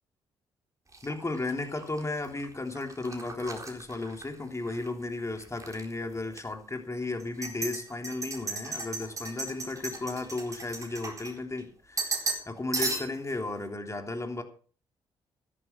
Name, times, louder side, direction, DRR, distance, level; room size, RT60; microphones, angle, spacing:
sound 1, 0.9-4.9 5.2-5.8 6.3-6.4 7.2-11.6 12.0-12.5 12.7-13.3, right 3 dB, 25° right, 4.1 m, -36 dB
voice 1, 1.0-14.4, left 2 dB, 25° left, 5 dB, 3.2 m, -34 dB
14.0 x 11.0 x 4.5 m, 0.42 s
hypercardioid pair, 45°, 12 cm